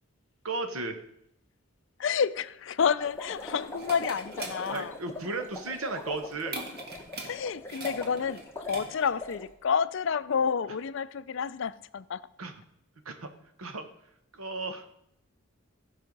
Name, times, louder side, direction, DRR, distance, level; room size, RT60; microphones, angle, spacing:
voice 1, 0.4-1.0 4.7-6.6 12.4-12.5 13.0-13.3 13.6-13.9 14.3-14.8, right 3 dB, 85° right, 1.1 m, -34 dB
voice 2, 2.0-4.9 7.2-8.4 8.7-12.2, left 6 dB, 60° left, 0.4 m, -29 dB
sound 1, 2.8-9.3, right 2 dB, 50° right, 1.5 m, -42 dB
sound 2, 3.0-9.5, left 2 dB, 10° left, 1.1 m, -42 dB
15.5 x 5.6 x 5.3 m
head